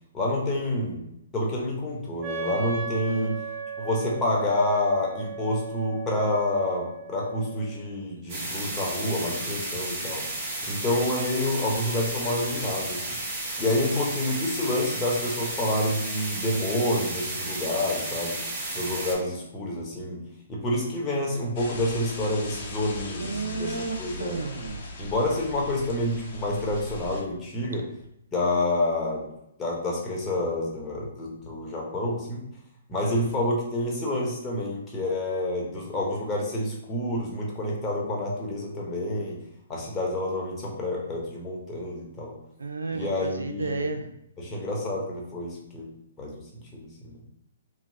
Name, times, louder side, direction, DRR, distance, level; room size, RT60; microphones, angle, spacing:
voice 1, 0.1-1.0 1.3-3.3 3.8-10.3 10.7-13.2 13.6-18.4 18.7-20.2 20.5-24.4 25.0-27.9 28.3-29.3 29.6-32.4 32.9-39.4 39.7-42.3 42.9-44.0 44.4-45.9 46.2-47.2, left 1 dB, 20° left, -3 dB, 1.0 m, -28 dB
Wind instrument woodwind instrument, 2.2-7.8, right 5 dB, 20° right, 0.6 m, -36 dB
sound 1, 8.3-19.1, right 2 dB, 40° right, 1.1 m, -33 dB
sound 2, 21.6-27.2, left 1 dB, 45° left, 0.7 m, -39 dB
voice 2, 23.2-24.9 42.6-44.0, right 3 dB, 80° right, 7 dB, 0.4 m, -32 dB
2.9 x 2.6 x 2.7 m, 0.78 s
figure-of-eight pair, 130°, 0 cm